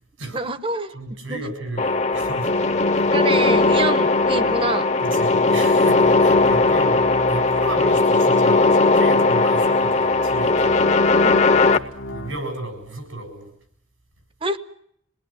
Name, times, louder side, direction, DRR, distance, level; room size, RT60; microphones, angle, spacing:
voice 1, 0.3-1.4 3.1-4.9 11.2-11.4 14.4-14.6, right 2 dB, 25° right, 13 dB, 1.0 m, -26 dB
voice 2, 0.9-2.7 5.0-7.0 7.3-11.0 12.1-13.5, right 2 dB, 85° right, 6 dB, 7.6 m, -33 dB
sound 1, 1.8-11.8, left 3 dB, 35° left, 0.9 m, -18 dB
sound 2, 2.0-12.4, left 1 dB, 80° left, 1.7 m, -37 dB
26.5 x 19.0 x 8.9 m, 0.71 s
head